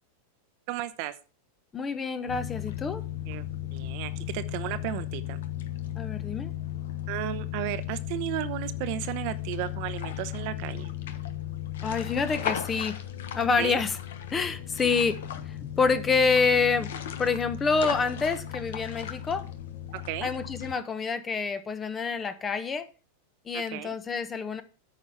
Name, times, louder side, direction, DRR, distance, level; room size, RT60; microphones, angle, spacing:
voice 1, 0.7-1.1 3.3-3.4 3.7-5.4 7.1-10.9 13.6-13.8 19.9-20.3 23.5-24.0, right 14 dB, 55° right, 0.8 m, -34 dB
voice 2, 1.7-3.1 5.9-6.5 11.8-13.0 13.3-14.0 14.3-15.2 15.4-19.5 20.2-22.9 23.5-24.6, left 5 dB, 20° left, 1.0 m, -27 dB
sound 1, 2.3-20.8, left 11 dB, 75° left, 1.1 m, -35 dB
9.0 x 5.0 x 5.6 m
hypercardioid pair, 110°, 0 cm